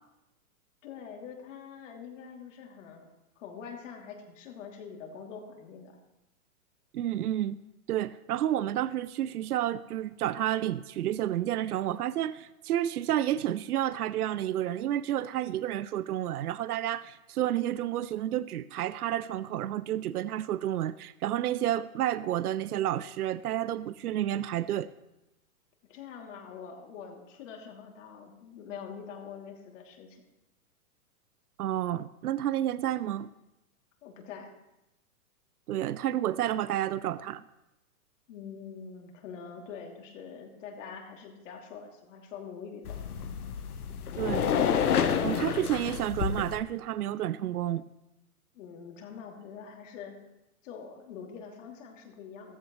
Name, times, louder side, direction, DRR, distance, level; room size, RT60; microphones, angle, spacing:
voice 1, 0.8-3.1 3.4-6.0 25.9-30.2 34.0-34.5 38.3-43.0 48.5-50.2 50.6-52.6, left 6 dB, 55° left, 1 dB, 2.8 m, -44 dB
voice 2, 6.9-7.6 7.9-24.9 31.6-33.3 35.7-37.4 44.2-44.5 45.2-47.8, right 12 dB, 85° right, 17 dB, 0.6 m, -30 dB
sound 1, 42.8-46.6, left 7 dB, 85° left, 1.1 m, -29 dB
14.5 x 13.5 x 3.1 m, 0.93 s
hypercardioid pair, 130°, 44 cm